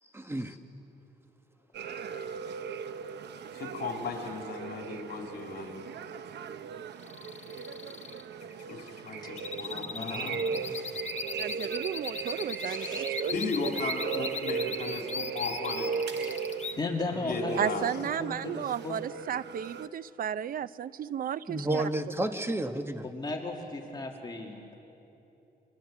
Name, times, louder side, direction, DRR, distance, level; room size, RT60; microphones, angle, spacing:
voice 1, 0.1-0.5 21.5-23.1, right 1 dB, 15° right, 7 dB, 1.1 m, -31 dB
sound 1, 1.7-19.9, right 6 dB, 85° right, 0.9 m, -37 dB
voice 2, 3.5-5.8 8.7-10.4 13.3-15.9 17.2-17.8, left 4 dB, 65° left, 1 dB, 3.4 m, -36 dB
sound 2, 7.0-16.8, left 6 dB, 40° left, 1.0 m, -39 dB
voice 3, 9.6-10.6 12.6-13.0 16.2-16.4 16.8-17.5 17.8-19.0 23.0-24.8, left 3 dB, 25° left, 1 dB, 2.2 m, -37 dB
voice 4, 11.4-13.3 13.6-13.7 17.6-21.8, right 9 dB, 55° right, 17 dB, 0.5 m, -34 dB
29.0 x 24.5 x 7.2 m, 3.0 s
wide cardioid pair, 155°, 17 cm